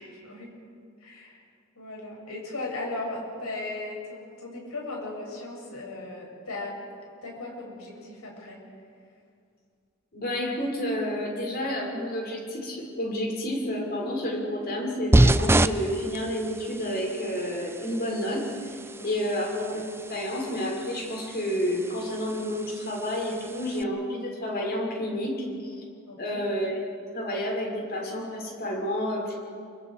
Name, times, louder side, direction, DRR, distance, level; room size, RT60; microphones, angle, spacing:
voice 1, 0.1-0.5 1.0-1.4 1.8-6.8 7.2-8.6 19.0-19.3 26.1-26.4, left 2 dB, 85° left, -2 dB, 7.8 m, -37 dB
voice 2, 10.1-18.5 19.0-25.5 25.7-25.8 26.2-26.8 27.1-29.3, equal, 45° left, -1 dB, 6.2 m, -30 dB
sound 1, 15.1-23.8, right 1 dB, 10° right, 0.5 m, -28 dB
28.0 x 25.0 x 5.0 m, 2.3 s
head